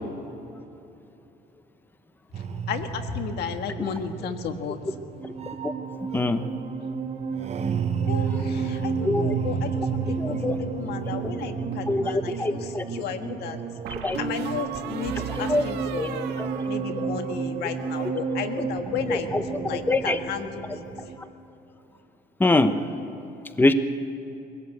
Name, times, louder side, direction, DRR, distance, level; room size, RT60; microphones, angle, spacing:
sound 1, 2.3-21.2, right 5 dB, 40° right, 1.3 m, -31 dB
voice 1, 2.4-4.8 8.1-13.6 14.2-16.3 16.7-20.8, left 7 dB, 75° left, 7 dB, 1.7 m, -34 dB
voice 2, 6.1-6.5 9.0-9.4 10.2-10.6 11.9-12.9 13.9-14.2 15.2-15.7 16.0-16.1 16.4-16.5 18.6-18.7 19.1-20.2 20.7-20.8 22.4-22.8 23.6-23.7, left 2 dB, 10° left, 9 dB, 1.0 m, -24 dB
sound 2, 11.1-12.0 13.8-17.3 17.6-18.1, right 7 dB, 85° right, 1.9 m, -36 dB
21.5 x 17.0 x 8.1 m, 2.8 s
cardioid pair, 110°, 17 cm